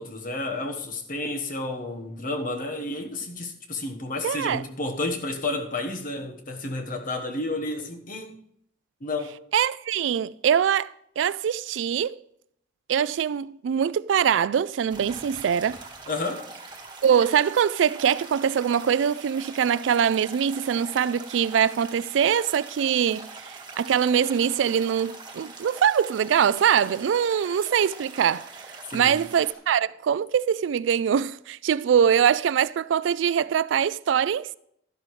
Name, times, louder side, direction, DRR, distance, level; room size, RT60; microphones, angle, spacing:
voice 1, 0.0-8.3 9.0-9.4 16.1-16.5 28.9-29.3, left 2 dB, 50° left, 1.2 m, -31 dB
voice 2, 4.2-4.6 9.5-12.2 12.9-15.8 17.0-28.5 28.9-34.5, right 8 dB, 90° right, 0.3 m, -23 dB
sound 1, 14.9-29.5, right 3 dB, 25° right, 1.7 m, -43 dB
12.0 x 11.5 x 3.2 m
head